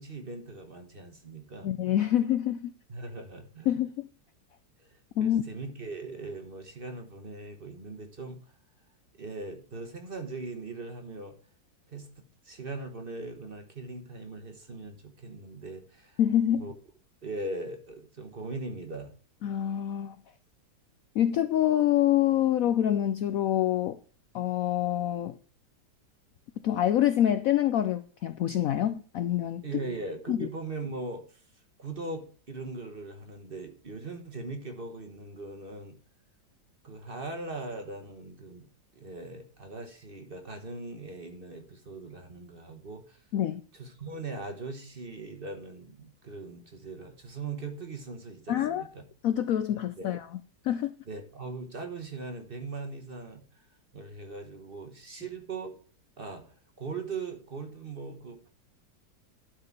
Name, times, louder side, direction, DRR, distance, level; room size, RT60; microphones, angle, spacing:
voice 1, 0.0-1.7 2.9-3.7 4.8-8.4 9.2-11.4 11.9-12.1 12.4-16.2 16.5-16.7 17.2-19.1 29.6-31.4 31.8-36.0 36.8-38.7 38.9-43.2 43.7-49.0 50.0-50.1 51.1-53.4 53.9-55.7 56.2-58.5, right 3 dB, 35° right, 1.3 m, -40 dB
voice 2, 1.6-2.7 3.7-4.1 5.2-5.4 16.2-16.7 19.4-20.2 21.1-24.0 24.3-25.4 26.6-29.6 30.3-30.5 43.3-43.6 48.5-48.8 49.2-50.3 50.6-50.9, left 11 dB, 70° left, 0.8 m, -26 dB
12.0 x 4.9 x 5.9 m
omnidirectional pair, 1.9 m